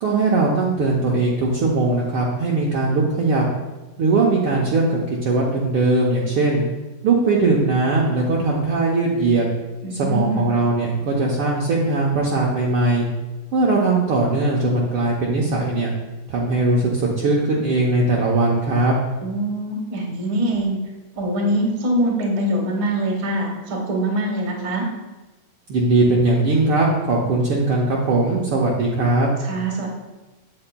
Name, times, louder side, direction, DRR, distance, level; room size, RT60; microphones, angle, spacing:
voice 1, 0.0-3.4 4.0-6.6 7.0-9.4 9.9-13.0 13.5-15.9 16.3-19.0 25.7-29.3, right 2 dB, 85° right, -3 dB, 1.2 m, -20 dB
voice 2, 9.8-10.4 19.2-20.8 21.1-24.8 29.4-29.9, right 1 dB, 50° right, 0 dB, 0.9 m, -23 dB
8.5 x 7.7 x 2.2 m, 1.1 s
omnidirectional pair, 3.5 m